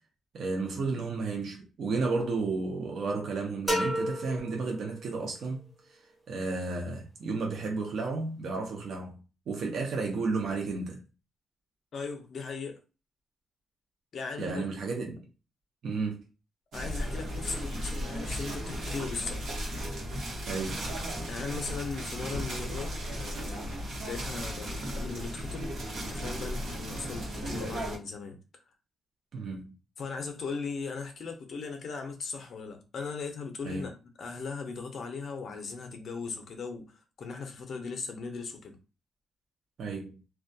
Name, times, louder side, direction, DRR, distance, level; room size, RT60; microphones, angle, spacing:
voice 1, 0.3-6.0 6.3-9.2 9.5-11.0 14.4-15.2 15.8-16.2 20.5-20.9 29.3-29.7 33.6-33.9 39.8-40.2, right 3 dB, 50° right, 0.5 m, -32 dB
sound 1, 3.7-5.4, equal, 5° right, 0.6 m, -32 dB
voice 2, 11.9-12.8 14.1-14.6 16.7-19.4 21.3-23.7 24.0-28.4 30.0-33.9 34.2-38.8, left 4 dB, 45° left, 0.5 m, -38 dB
sound 2, 16.7-28.0, equal, 70° right, 0.9 m, -35 dB
2.2 x 2.1 x 2.6 m
cardioid pair, 170°, 0 cm